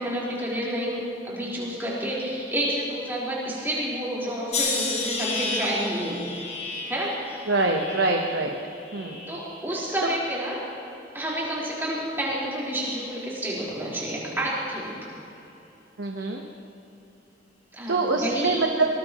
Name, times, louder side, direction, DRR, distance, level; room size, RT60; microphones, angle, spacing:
voice 1, 0.0-6.2 6.9-7.4 9.3-10.6 11.1-15.0 17.7-18.6, right 1 dB, 10° right, -8 dB, 4.5 m, -29 dB
sound 1, 4.5-9.7 10.1-10.8 11.5-11.8, left 3 dB, 35° left, 2.0 m, -33 dB
voice 2, 7.5-8.6 8.9-9.3 16.0-16.4 17.9-18.9, right 3 dB, 85° right, 1 dB, 1.2 m, -24 dB
23.5 x 20.0 x 3.1 m, 2.9 s
head